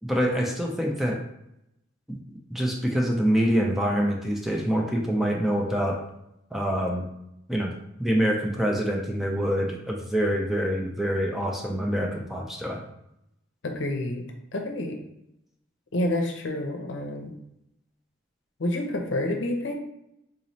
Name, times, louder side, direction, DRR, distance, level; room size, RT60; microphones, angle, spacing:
voice 1, 0.0-1.2 2.1-2.2 2.5-6.0 6.5-7.1 7.5-7.7 8.0-12.8, equal, ahead, 0 dB, 0.4 m, -25 dB
voice 2, 13.6-14.2 14.5-15.0 15.9-17.4 18.6-19.7, left 1 dB, 70° left, 3 dB, 0.6 m, -28 dB
3.9 x 3.0 x 2.7 m, 0.80 s
head